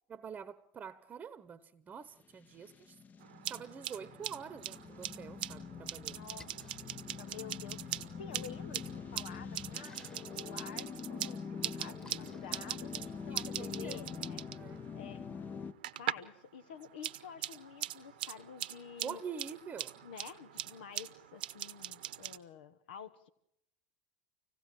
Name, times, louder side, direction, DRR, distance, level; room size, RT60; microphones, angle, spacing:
voice 1, 0.1-3.0 3.5-6.2 13.3-14.0 14.5-14.8 19.0-20.0, right 6 dB, 30° right, 1.0 m, -46 dB
sound 1, 2.4-15.7, left 6 dB, 35° left, 0.9 m, -45 dB
sound 2, 3.2-16.4 16.7-22.4, right 13 dB, 75° right, 1.0 m, -42 dB
voice 2, 6.1-6.5 7.2-14.4 14.9-15.3 16.0-19.2 20.0-23.3, left 7 dB, 75° left, 1.1 m, -50 dB
Splash splatter, 6.2-13.5, left 2 dB, 15° left, 1.7 m, -63 dB
25.5 x 17.5 x 7.6 m
hypercardioid pair, 85°, 5 cm